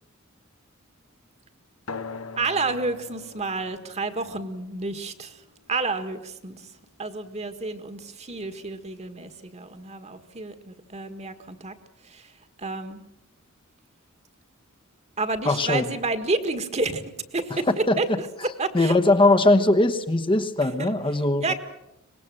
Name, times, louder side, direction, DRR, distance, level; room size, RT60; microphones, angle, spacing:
sound 1, 1.9-6.9, left 4 dB, 85° left, 1.1 m, -43 dB
voice 1, 2.4-11.8 12.0-13.0 15.2-17.0 17.3-19.0 20.6-20.9 21.4-21.5, right 3 dB, 30° right, 10 dB, 1.7 m, -30 dB
voice 2, 15.4-15.9 17.9-18.0 18.7-21.5, left 2 dB, 25° left, 7 dB, 1.1 m, -20 dB
24.5 x 20.0 x 7.7 m, 0.86 s
head